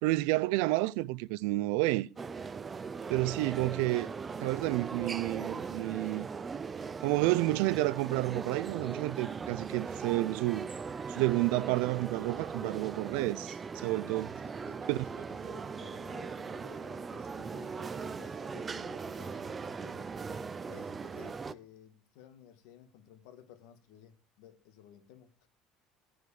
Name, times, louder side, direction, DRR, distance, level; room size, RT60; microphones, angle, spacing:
voice 1, 0.0-2.1 3.1-4.1 4.4-6.3 7.0-10.7 11.1-14.3 14.9-15.0, right 19 dB, 80° right, 0.5 m, -30 dB
sound 1, 2.2-21.5, right 5 dB, 15° right, 0.5 m, -39 dB
voice 2, 3.4-3.9 14.3-20.1 20.7-25.5, left 9 dB, 75° left, 1.9 m, -55 dB
14.5 x 5.0 x 8.6 m
cardioid pair, 175°, 0 cm